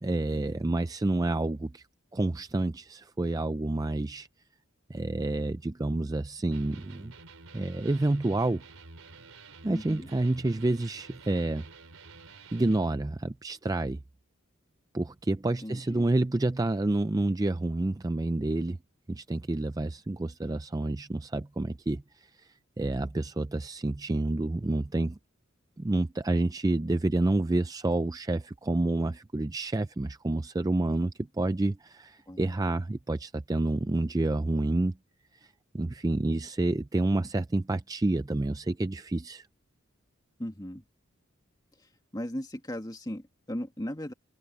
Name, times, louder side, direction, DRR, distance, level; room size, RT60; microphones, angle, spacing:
voice 1, 0.0-1.8 2.1-4.3 4.9-7.1 7.5-8.6 9.6-11.7 12.5-14.0 14.9-18.8 19.1-25.2 25.8-34.9 35.4-39.5, right 2 dB, 15° right, 0.4 m, -29 dB
Electric guitar, 6.5-12.9, right 3 dB, 90° right, 4.3 m, -50 dB
voice 2, 9.7-10.1 15.6-16.0 32.3-32.6 40.4-40.8 42.1-44.1, left 1 dB, 20° left, 2.1 m, -37 dB
head